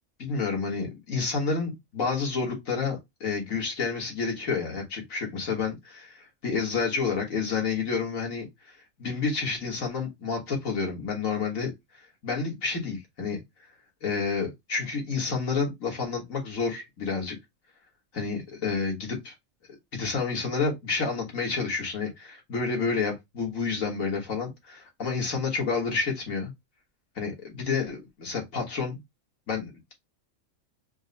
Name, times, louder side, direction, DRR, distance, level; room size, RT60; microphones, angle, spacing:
voice 1, 0.2-8.5 9.0-13.4 14.0-17.4 18.1-19.3 19.9-26.5 27.2-29.0 29.5-29.9, left 5 dB, 70° left, 2.0 m, -29 dB
4.7 x 2.2 x 3.9 m
omnidirectional pair, 1.5 m